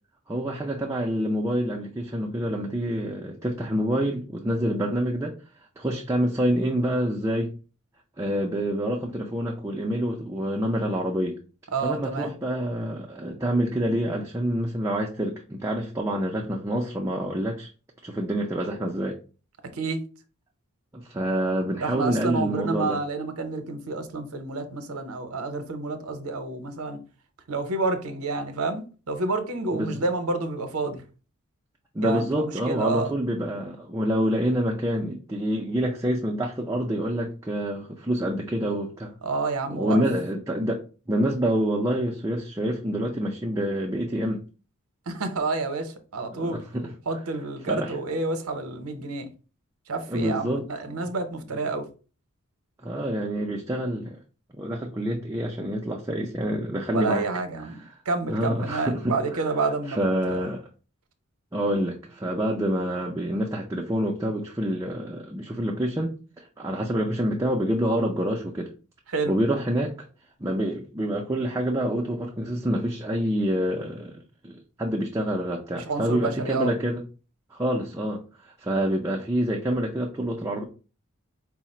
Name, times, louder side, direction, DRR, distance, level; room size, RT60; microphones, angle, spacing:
voice 1, 0.3-5.3 5.8-7.5 8.2-11.4 11.8-17.7 18.0-19.2 20.9-23.0 29.7-30.0 31.9-39.1 39.7-40.8 41.1-44.4 46.3-46.9 47.7-48.0 50.1-50.7 51.6-51.7 52.8-54.2 54.5-57.3 58.3-59.4 59.9-60.6 61.5-68.7 69.3-70.0 70.4-74.2 74.4-77.1 77.5-80.6, equal, 15° right, 0.4 m, -27 dB
voice 2, 11.7-12.3 19.7-20.0 21.8-27.0 27.5-31.1 32.0-33.1 39.2-40.0 45.1-46.6 47.1-49.3 49.9-51.9 56.9-57.8 58.1-60.4 69.1-69.3 75.8-76.7, right 3 dB, 75° right, 0.7 m, -29 dB
4.7 x 2.1 x 4.1 m
head